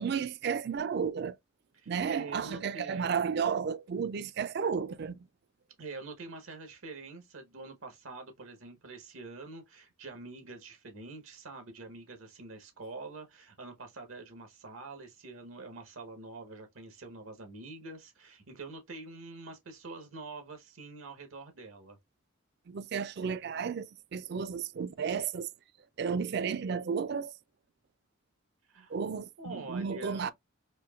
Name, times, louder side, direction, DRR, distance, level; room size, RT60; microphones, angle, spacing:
voice 1, 0.0-1.4 1.9-5.3 22.7-25.5 26.0-27.3 28.9-30.3, right 6 dB, 50° right, 0.3 m, -33 dB
voice 2, 1.7-3.2 5.8-22.0 28.7-29.0 29.4-30.3, right 3 dB, 80° right, 1.0 m, -46 dB
4.4 x 2.7 x 2.3 m
head